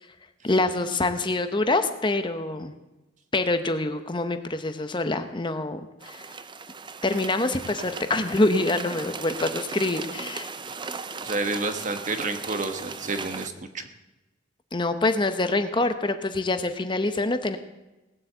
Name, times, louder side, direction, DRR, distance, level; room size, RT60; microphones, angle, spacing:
voice 1, 0.4-2.7 3.3-6.2 7.0-10.5 14.7-17.6, left 2 dB, 25° left, 9 dB, 0.9 m, -25 dB
sound 1, 6.0-13.5, right 4 dB, 25° right, 0.6 m, -37 dB
voice 2, 11.2-13.9, right 3 dB, 40° right, 7 dB, 1.4 m, -30 dB
18.0 x 8.1 x 8.0 m, 1.0 s
head